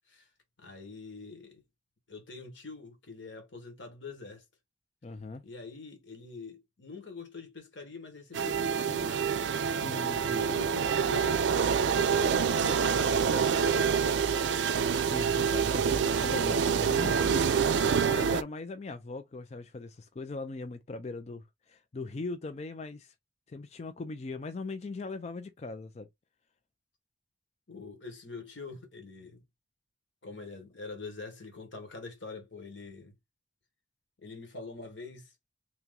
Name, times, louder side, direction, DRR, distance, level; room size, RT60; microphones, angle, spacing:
voice 1, 0.6-1.6 2.1-4.4 5.4-9.3 10.1-11.4 11.9-14.1 15.1-15.7 27.7-29.4 30.2-33.1 34.2-35.3, left 4 dB, 85° left, 1.3 m, -45 dB
voice 2, 5.0-5.4 9.8-10.6 15.0-17.5 18.0-23.1 23.5-26.1, left 3 dB, 35° left, 0.4 m, -40 dB
sound 1, 8.3-18.4, right 6 dB, 80° right, 0.4 m, -27 dB
3.0 x 2.9 x 3.6 m
head